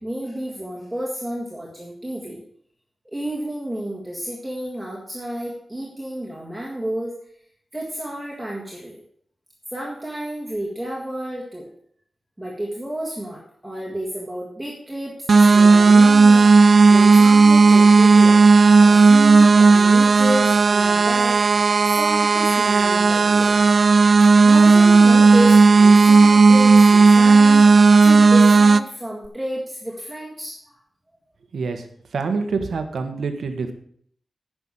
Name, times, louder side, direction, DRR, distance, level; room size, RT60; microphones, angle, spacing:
voice 1, 0.0-2.4 3.1-7.1 7.7-9.0 9.7-11.7 12.4-18.4 18.8-21.4 22.0-23.6 24.4-30.8, right 1 dB, 5° right, -4 dB, 1.8 m, -31 dB
sound 1, 15.3-28.8, right 4 dB, 50° right, 0.4 m, -13 dB
voice 2, 31.5-33.7, right 4 dB, 80° right, 7 dB, 1.3 m, -26 dB
10.0 x 6.1 x 7.3 m, 0.62 s
wide cardioid pair, 180°, 0 cm